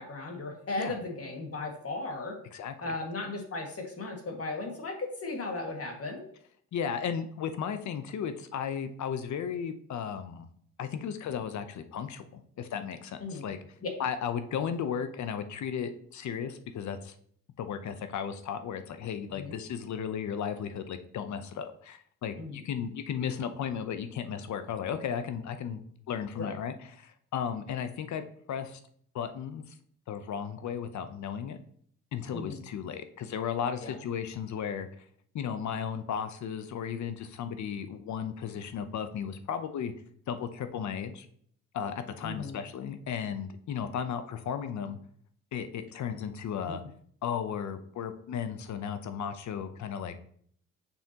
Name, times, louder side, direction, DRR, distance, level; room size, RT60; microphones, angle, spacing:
voice 1, 0.0-2.4 2.8-6.2 13.2-13.4 13.8-13.9 19.4-19.5 22.4-22.6 26.4-26.6 32.3-32.6 33.8-33.9 42.2-42.6, left 2 dB, 45° left, 1 dB, 2.0 m, -36 dB
voice 2, 2.5-2.9 6.7-10.5 10.8-13.6 14.0-17.1 17.6-28.2 28.5-28.8 29.1-29.6 30.1-31.6 32.1-34.9 35.3-39.9 40.3-41.3 41.7-45.0 45.5-46.8 47.2-50.2, left 7 dB, 60° left, 10 dB, 0.8 m, -35 dB
7.0 x 5.7 x 2.9 m, 0.62 s
cardioid pair, 75°, 32 cm